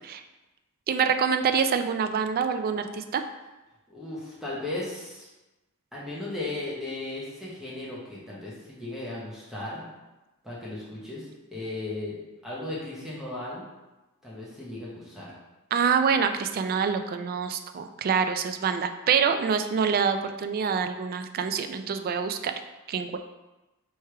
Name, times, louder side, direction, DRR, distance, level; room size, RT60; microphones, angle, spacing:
voice 1, 0.9-3.2 15.7-22.5 22.9-23.2, right 6 dB, 45° right, 8 dB, 0.3 m, -26 dB
voice 2, 3.9-5.3 5.9-9.9 10.4-12.2 12.4-13.6 14.2-15.3, left 2 dB, ahead, -7 dB, 1.0 m, -36 dB
3.3 x 3.3 x 4.5 m, 1.1 s
head